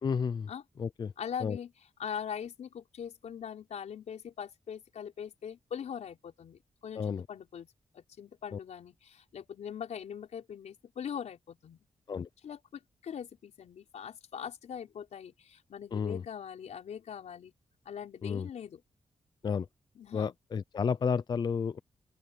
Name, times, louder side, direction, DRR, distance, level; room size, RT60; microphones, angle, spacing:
voice 1, 0.0-0.5 0.8-1.1 1.4-1.6 7.0-7.3 8.5-8.6 12.1-12.3 15.9-16.2 18.2-18.5 19.4-19.7 20.1-21.8, left 6 dB, 40° left, 0.4 m, -31 dB
voice 2, 1.2-1.7 2.0-7.7 7.9-11.8 12.4-17.5 17.8-18.8 19.9-20.3, left 8 dB, 80° left, 4.6 m, -41 dB
open air
wide cardioid pair, 135°, 12 cm